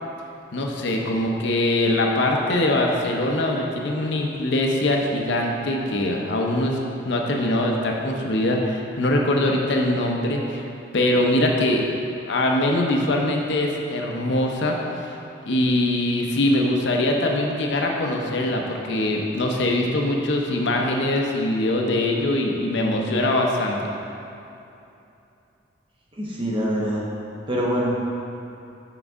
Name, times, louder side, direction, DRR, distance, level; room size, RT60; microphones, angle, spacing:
voice 1, 0.5-6.8 7.0-10.7 10.9-11.8 12.3-14.8 15.5-23.8, left 1 dB, 65° left, 0 dB, 0.6 m, -22 dB
voice 2, 26.2-27.0 27.5-28.1, equal, 25° right, -4 dB, 0.8 m, -24 dB
5.9 x 5.1 x 3.5 m, 2.8 s
head